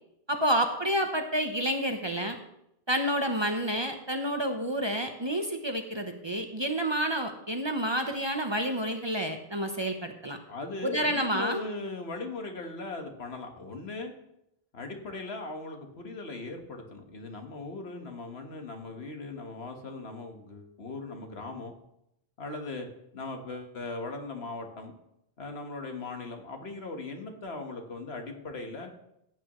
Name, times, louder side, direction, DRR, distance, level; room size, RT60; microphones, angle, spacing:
voice 1, 0.3-2.4 2.9-10.4 10.8-11.6, right 1 dB, 30° right, 5 dB, 0.8 m, -29 dB
voice 2, 10.5-14.1 14.7-21.7 22.4-22.9 23.1-24.9 25.4-28.9, left 3 dB, 75° left, 4 dB, 1.6 m, -39 dB
15.0 x 8.7 x 3.1 m, 0.80 s
omnidirectional pair, 1.1 m